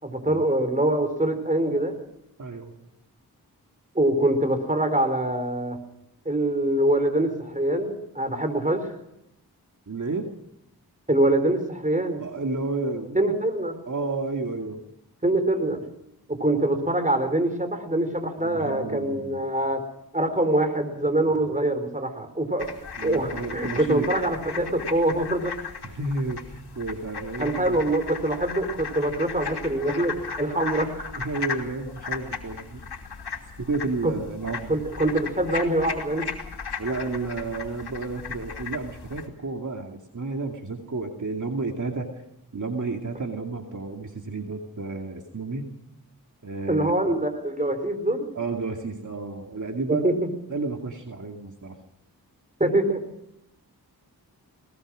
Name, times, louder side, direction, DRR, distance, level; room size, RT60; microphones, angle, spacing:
voice 1, 0.0-2.0 3.9-5.8 6.2-8.9 11.1-12.2 13.1-13.8 15.2-15.9 16.3-19.8 20.1-25.6 27.4-30.9 34.0-34.1 34.7-36.3 46.7-48.3 49.9-50.2 52.6-53.0, right 1 dB, 20° right, 9 dB, 4.4 m, -24 dB
voice 2, 2.4-2.7 9.9-10.3 12.2-13.3 13.9-14.8 18.4-19.4 21.3-21.4 23.0-24.1 25.8-27.8 30.4-30.5 31.2-32.8 33.6-34.7 36.8-42.1 42.5-45.6 46.4-46.9 48.3-50.0 50.5-51.7, right 3 dB, 50° right, 3 dB, 2.4 m, -31 dB
sound 1, 22.6-39.3, left 6 dB, 80° left, 3.0 m, -36 dB
21.0 x 20.5 x 6.3 m, 0.83 s
cardioid pair, 50°, 39 cm